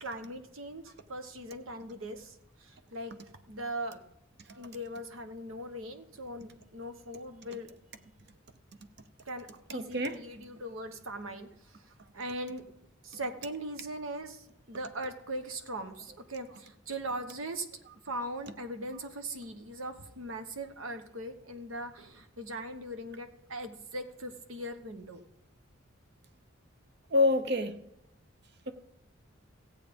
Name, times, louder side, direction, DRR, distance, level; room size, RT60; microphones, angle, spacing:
voice 1, 0.0-3.2 3.5-4.0 4.6-7.7 9.2-12.6 13.0-17.7 18.0-25.2, right 1 dB, 90° right, 1.2 m, -40 dB
voice 2, 9.7-10.2 27.1-27.8 28.7-28.8, left 2 dB, 55° right, 0.9 m, -27 dB
15.0 x 8.3 x 5.3 m
head